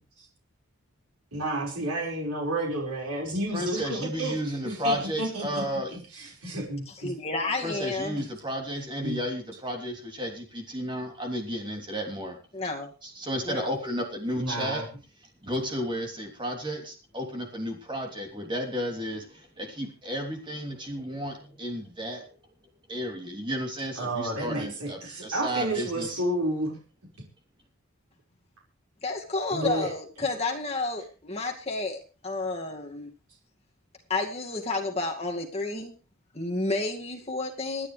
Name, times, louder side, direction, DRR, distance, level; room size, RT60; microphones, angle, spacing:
voice 1, 1.3-4.4 4.6-5.6 6.1-7.1 8.2-8.3 9.0-9.2 14.4-14.8 24.0-26.8 29.5-29.9 30.2-30.3, right 1 dB, 85° right, -1 dB, 5.3 m, -31 dB
voice 2, 3.5-5.9 7.6-12.4 13.0-14.8 15.4-22.3 22.9-26.2, equal, 20° right, 2 dB, 3.2 m, -33 dB
voice 3, 7.0-8.2 12.5-12.9 13.4-13.7 29.0-33.1 34.1-35.9 36.3-37.9, left 3 dB, 25° left, 1 dB, 2.3 m, -31 dB
27.0 x 9.8 x 3.4 m, 0.35 s
head